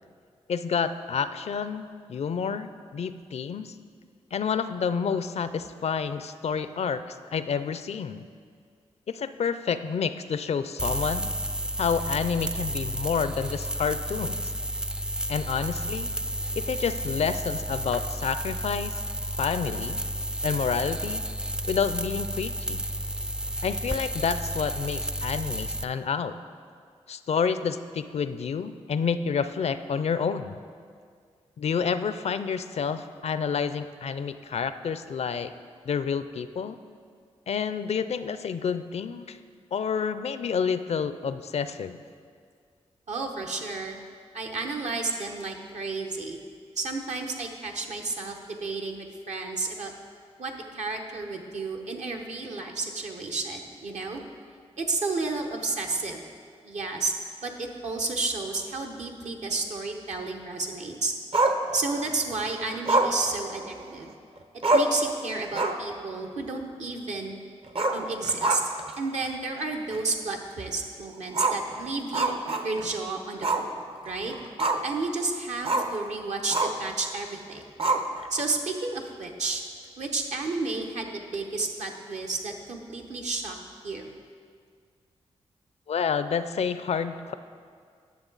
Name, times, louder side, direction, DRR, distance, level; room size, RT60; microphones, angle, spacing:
voice 1, 0.5-3.8 4.3-8.2 9.1-11.3 11.8-14.5 15.3-16.1 16.5-19.0 19.4-20.0 20.4-21.2 21.6-22.8 23.6-26.4 27.1-30.6 31.6-35.5 35.9-36.8 37.5-39.4 39.7-42.0 85.9-87.3, left 6 dB, 60° left, 12 dB, 0.4 m, -29 dB
sound 1, 10.8-25.8, right 1 dB, 5° right, 0.3 m, -32 dB
voice 2, 43.1-44.0 44.3-46.4 46.8-49.9 50.4-54.2 54.8-56.2 56.6-57.1 57.4-61.1 61.7-64.1 64.7-67.3 67.9-68.6 69.0-72.3 72.6-74.3 74.8-77.6 78.3-79.6 80.0-83.6 83.8-84.1, right 3 dB, 70° right, 3 dB, 1.0 m, -31 dB
Growling, 61.3-62.1 62.9-64.1 64.4-64.5 64.6-65.1 65.4-65.9 66.2-66.3 67.7-68.9 69.2-69.3 69.9-70.0 71.3-72.9 73.4-73.7 74.0-75.0 75.6-76.0 76.5-76.9 77.8-78.4, right 2 dB, 50° right, 0.7 m, -26 dB
10.0 x 6.8 x 3.9 m, 2.1 s
supercardioid pair, 45°, 12 cm